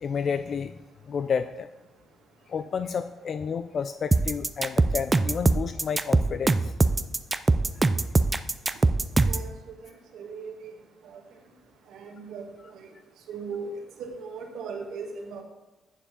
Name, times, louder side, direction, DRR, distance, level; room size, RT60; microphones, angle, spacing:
voice 1, 0.0-0.8 1.1-1.7 2.5-6.7, left 6 dB, 50° left, 11 dB, 0.4 m, -30 dB
sound 1, 4.1-9.5, right 3 dB, 20° right, 0.4 m, -22 dB
voice 2, 9.8-10.7 11.0-11.2 11.9-12.4 12.7-12.8 13.3-13.7 14.0-15.4, right 5 dB, 80° right, 3 dB, 1.5 m, -38 dB
11.0 x 7.3 x 3.8 m, 1.1 s
cardioid pair, 90°, 0 cm